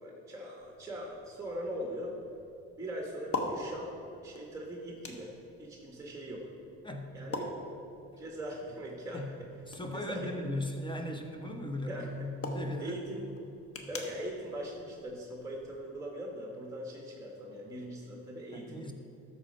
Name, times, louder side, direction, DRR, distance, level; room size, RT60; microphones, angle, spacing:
voice 1, 0.0-2.1 2.8-3.9 4.2-5.3 5.6-6.5 7.1-7.5 8.2-9.2 9.9-10.2 11.9-12.1 12.8-13.2 13.9-18.8, right 1 dB, 10° right, -1 dB, 1.4 m, -40 dB
sound 1, 0.6-15.8, left 2 dB, 50° left, 1.2 m, -45 dB
voice 2, 6.8-7.3 8.1-8.2 9.1-9.3 9.7-13.0 18.5-18.9, left 1 dB, 15° left, 4 dB, 1.1 m, -38 dB
13.0 x 4.3 x 5.4 m, 2.7 s
cardioid pair, 90°, 30 cm